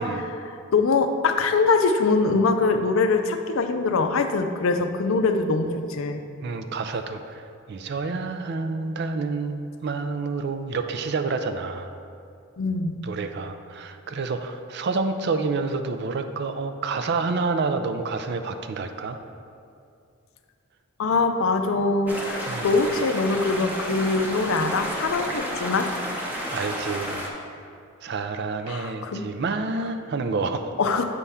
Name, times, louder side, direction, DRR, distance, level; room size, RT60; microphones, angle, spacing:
voice 1, 0.0-6.2 12.6-12.9 21.0-25.9 28.7-29.3 30.8-31.0, left 3 dB, 65° left, 6 dB, 0.5 m, -23 dB
voice 2, 6.4-7.4 7.7-11.9 13.0-19.2 22.5-22.7 26.5-27.3 28.0-30.7, right 4 dB, 50° right, 8 dB, 0.4 m, -28 dB
sound 1, 22.1-27.3, equal, 10° right, 0.7 m, -31 dB
8.3 x 3.5 x 5.5 m, 2.4 s
head